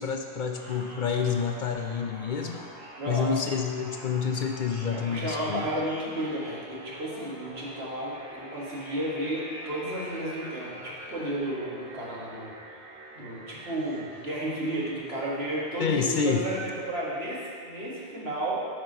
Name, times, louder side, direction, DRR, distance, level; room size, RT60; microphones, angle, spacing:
voice 1, 0.0-2.7 3.1-5.6 15.8-16.4, left 6 dB, 60° left, 4 dB, 0.6 m, -28 dB
sound 1, 0.5-15.6, equal, 40° right, 2.0 m, -45 dB
voice 2, 3.0-3.4 4.9-12.5 13.2-18.7, right 1 dB, 80° right, -6 dB, 1.9 m, -32 dB
8.7 x 5.8 x 3.9 m, 2.1 s
omnidirectional pair, 1.0 m